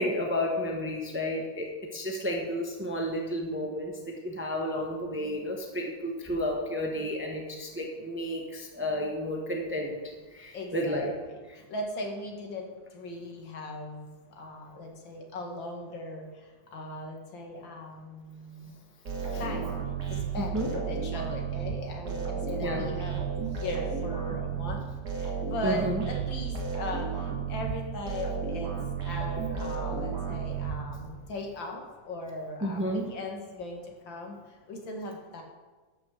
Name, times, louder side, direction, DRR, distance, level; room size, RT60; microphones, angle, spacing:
voice 1, 0.0-9.9 10.3-11.1 19.2-19.4 20.4-20.7 22.6-22.9 25.6-26.0 32.6-33.1, equal, 10° right, 0 dB, 1.0 m, -31 dB
voice 2, 10.5-18.8 19.3-19.8 20.1-28.7 29.0-35.4, left 1 dB, 75° left, 1 dB, 2.4 m, -39 dB
sound 1, 19.0-31.3, right 6 dB, 55° right, 2.2 m, -33 dB
12.5 x 5.9 x 6.4 m, 1.3 s
omnidirectional pair, 2.1 m